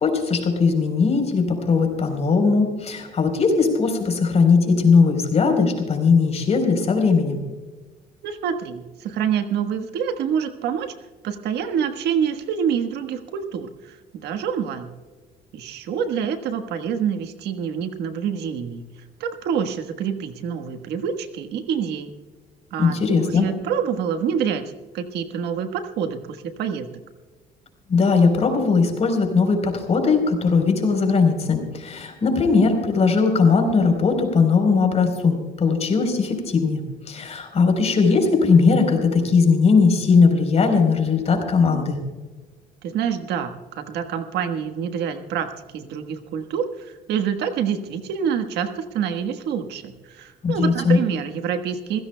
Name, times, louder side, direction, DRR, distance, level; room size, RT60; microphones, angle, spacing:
voice 1, 0.0-7.4 22.8-23.5 27.9-42.0 50.4-51.0, left 4 dB, 40° left, 4 dB, 4.0 m, -19 dB
voice 2, 8.2-10.9 11.2-14.9 15.5-18.9 19.2-22.2 22.7-26.9 42.8-52.0, right 7 dB, 80° right, 8 dB, 1.4 m, -27 dB
27.0 x 16.0 x 2.2 m, 1.3 s
cardioid pair, 110°, 17 cm